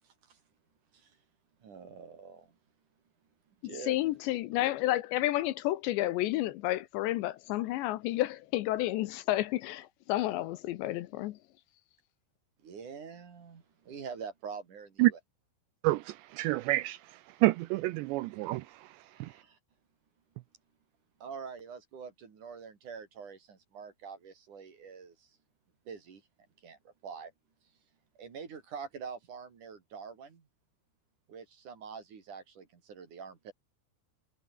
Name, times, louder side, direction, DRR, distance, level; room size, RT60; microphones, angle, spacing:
voice 1, 1.6-2.4 3.6-4.0 12.6-15.2 19.1-19.6 21.2-25.1 25.9-26.2 26.6-27.3 28.2-30.4 31.3-33.5, right 6 dB, 45° right, 4.4 m, -45 dB
voice 2, 3.6-11.4, left 16 dB, 80° left, 2.9 m, -31 dB
voice 3, 15.8-17.0 17.4-18.6 19.2-19.3, right 19 dB, 85° right, 2.6 m, -27 dB
omnidirectional pair, 5.5 m